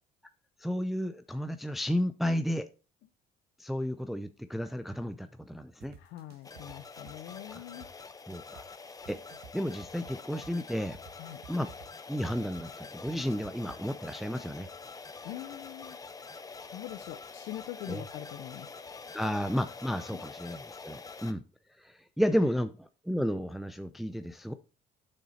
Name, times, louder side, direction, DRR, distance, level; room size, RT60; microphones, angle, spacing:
voice 1, 0.6-2.7 3.6-5.9 7.5-7.6 8.3-8.6 9.1-9.2 9.5-11.0 11.5-11.7 12.1-14.7 17.9-18.0 19.1-21.4 21.8-24.5, equal, ahead, 9 dB, 0.6 m, -32 dB
sound 1, 5.8-13.8, right 7 dB, 70° right, 1.6 m, -53 dB
voice 2, 5.9-7.9 11.2-11.4 15.2-16.1 16.5-18.8 20.1-20.2 22.3-22.5, left 14 dB, 90° left, 7 dB, 0.8 m, -44 dB
sound 2, 6.4-21.3, left 4 dB, 20° left, 1.0 m, -46 dB
8.9 x 6.6 x 4.3 m, 0.33 s
cardioid pair, 110°, 17 cm